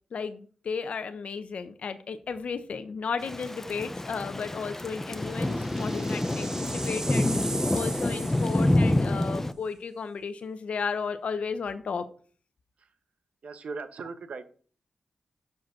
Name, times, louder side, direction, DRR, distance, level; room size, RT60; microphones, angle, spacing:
voice 1, 0.1-7.3 7.7-12.0, left 5 dB, 65° left, 9 dB, 0.6 m, -34 dB
sound 1, 2.3-2.7 3.0-3.1 4.5-9.2, right 2 dB, 25° right, 0.7 m, -39 dB
Thunder / Rain, 3.2-9.5, left 1 dB, 15° left, 0.5 m, -27 dB
voice 2, 13.4-14.4, right 4 dB, 65° right, 11 dB, 0.9 m, -38 dB
5.8 x 5.0 x 6.1 m, 0.43 s
cardioid pair, 80°, 2 cm